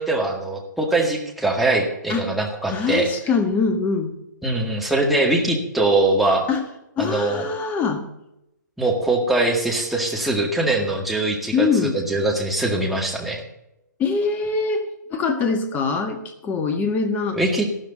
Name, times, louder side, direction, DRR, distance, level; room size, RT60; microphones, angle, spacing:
voice 1, 0.0-3.1 4.4-6.5 7.0-7.5 8.8-13.4 17.3-17.7, right 2 dB, ahead, -1 dB, 1.9 m, -22 dB
voice 2, 2.7-4.1 6.5-6.6 7.0-8.0 11.5-12.0 14.0-17.4, left 4 dB, 15° left, 7 dB, 1.6 m, -23 dB
13.0 x 12.5 x 4.0 m, 0.87 s
figure-of-eight pair, 130°, 10 cm